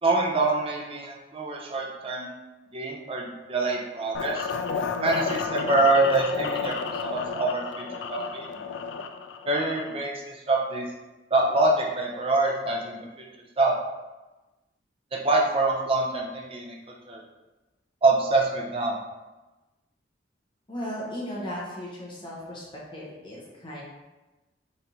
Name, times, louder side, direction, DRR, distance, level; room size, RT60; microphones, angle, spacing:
voice 1, 0.0-2.3 2.7-4.5 5.0-6.8 7.0-8.5 9.5-10.8 11.3-13.3 13.6-13.7 15.1-17.2 18.0-19.0, right 2 dB, 35° right, -1 dB, 0.6 m, -25 dB
sound 1, 4.1-10.1, left 5 dB, 85° left, 0.3 m, -32 dB
voice 2, 20.7-22.6 22.9-23.8, equal, 30° left, -5 dB, 1.0 m, -36 dB
4.1 x 3.3 x 2.8 m, 1.1 s
head